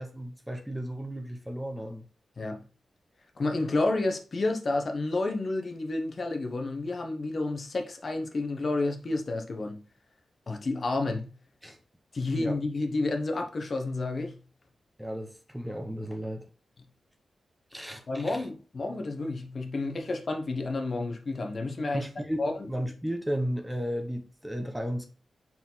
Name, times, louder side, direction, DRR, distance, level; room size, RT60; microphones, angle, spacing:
voice 1, 0.0-2.1 11.6-11.8 12.3-12.5 15.0-16.5 17.7-18.4 21.9-25.1, equal, 5° right, 0.9 m, -34 dB
voice 2, 3.4-9.8 10.5-11.3 12.1-14.4 18.1-22.7, left 2 dB, 40° left, 1.1 m, -30 dB
5.6 x 4.8 x 3.9 m
wide cardioid pair, 165°, 0 cm